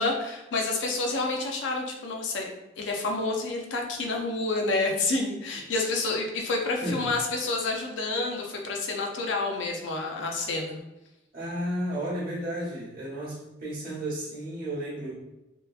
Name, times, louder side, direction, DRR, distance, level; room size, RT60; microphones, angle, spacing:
voice 1, 0.0-2.5 2.8-10.8, left 3 dB, 75° left, 1 dB, 0.5 m, -29 dB
voice 2, 11.3-15.2, right 1 dB, 50° right, -7 dB, 1.1 m, -33 dB
2.8 x 2.2 x 2.3 m, 0.97 s
head